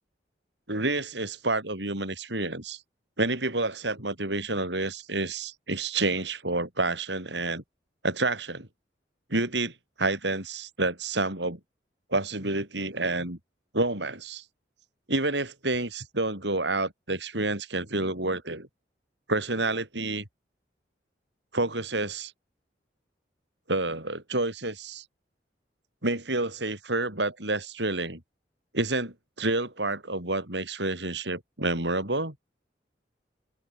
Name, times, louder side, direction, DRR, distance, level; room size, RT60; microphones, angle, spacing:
voice 1, 0.7-2.8 3.2-7.6 8.0-8.7 9.3-11.6 12.1-13.4 13.7-14.4 15.1-18.7 19.3-20.2 21.5-22.3 23.7-25.0 26.0-28.2 28.7-32.3, right 2 dB, 75° right, 6.9 m, -29 dB
head